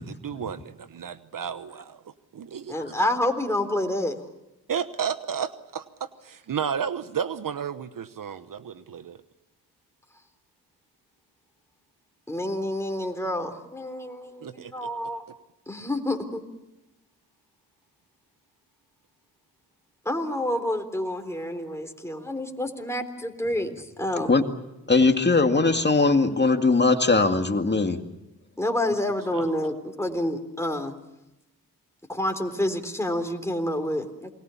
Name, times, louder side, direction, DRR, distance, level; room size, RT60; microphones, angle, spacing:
voice 1, 0.2-2.0 2.3-2.9 4.7-9.2 14.4-15.1 29.3-29.5, right 7 dB, 60° right, 13 dB, 1.1 m, -33 dB
voice 2, 2.7-4.2 12.3-15.2 15.7-16.4 20.1-24.3 27.1-27.2 28.6-30.9 32.1-34.3, left 1 dB, 5° left, 5 dB, 3.7 m, -28 dB
voice 3, 24.9-28.0, left 3 dB, 30° left, 6 dB, 2.2 m, -20 dB
28.5 x 21.0 x 7.1 m, 0.94 s
cardioid pair, 60°, 38 cm